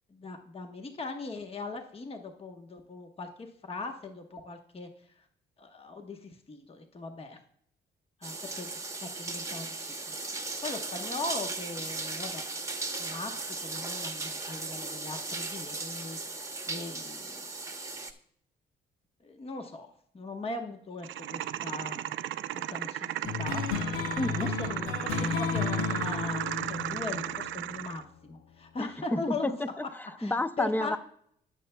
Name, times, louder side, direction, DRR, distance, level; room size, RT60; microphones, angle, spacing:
voice 1, 0.1-5.2 5.6-7.4 8.2-10.1 10.6-12.4 13.0-17.4 19.2-19.9 20.1-22.0 22.5-23.7 24.4-29.6 30.2-31.0, left 3 dB, 30° left, 1.0 m, -40 dB
sound 1, 8.2-18.1, right 3 dB, 15° right, 1.0 m, -37 dB
sound 2, 21.0-28.0, right 12 dB, 75° right, 0.5 m, -35 dB
sound 3, 23.2-28.2, left 6 dB, 85° left, 1.1 m, -33 dB
voice 2, 24.2-24.5 28.8-31.0, left 1 dB, 10° left, 0.5 m, -31 dB
16.5 x 6.8 x 2.2 m
cardioid pair, 90°, 20 cm